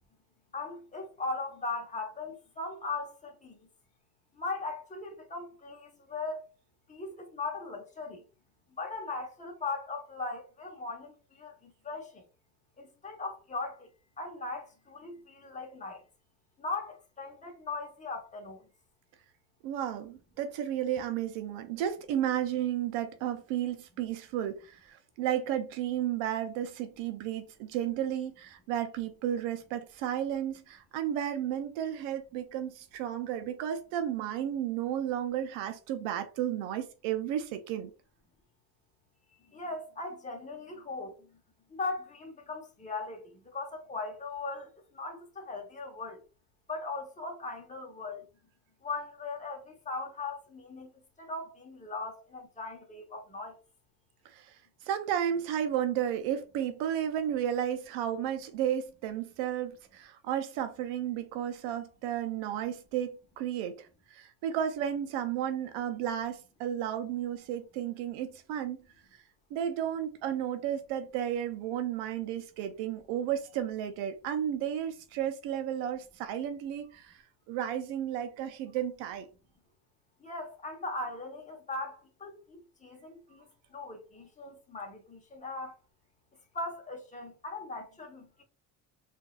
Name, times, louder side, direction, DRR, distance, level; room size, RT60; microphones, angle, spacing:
voice 1, 0.5-3.6 4.4-6.4 6.9-8.2 8.8-12.2 12.8-13.9 14.2-16.0 16.6-18.6 39.5-41.2 41.7-46.2 46.7-48.3 48.8-50.9 51.2-53.6 80.2-83.4 83.7-85.8 86.5-88.4, left 3 dB, 15° left, 1.0 m, -39 dB
voice 2, 19.6-37.9 54.2-68.8 69.5-79.3, right 10 dB, 85° right, 0.6 m, -33 dB
3.9 x 2.6 x 2.3 m
supercardioid pair, 75°, 44 cm